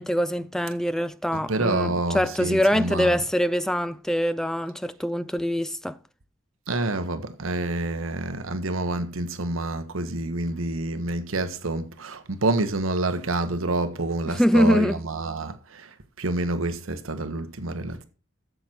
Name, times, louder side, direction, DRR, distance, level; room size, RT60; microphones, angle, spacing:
voice 1, 0.0-6.0 14.3-15.0, equal, 5° left, 0.4 m, -24 dB
voice 2, 1.3-3.2 6.7-18.0, right 2 dB, 85° right, 1.1 m, -28 dB
13.0 x 7.7 x 4.4 m
head